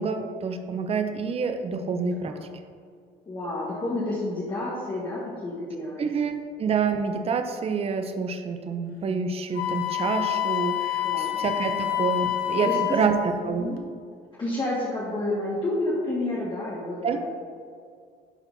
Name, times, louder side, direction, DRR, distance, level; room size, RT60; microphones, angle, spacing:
voice 1, 0.0-2.3 6.0-13.8 17.0-17.2, right 5 dB, 35° right, 6 dB, 0.7 m, -27 dB
voice 2, 3.3-6.1 11.0-11.4 12.6-12.8 13.4-13.8 14.4-17.3, left 2 dB, 30° left, -7 dB, 1.7 m, -30 dB
Wind instrument woodwind instrument, 9.6-13.1, left 13 dB, 70° left, 0.9 m, -27 dB
11.5 x 4.4 x 4.1 m, 2.1 s
cardioid pair, 110°, 17 cm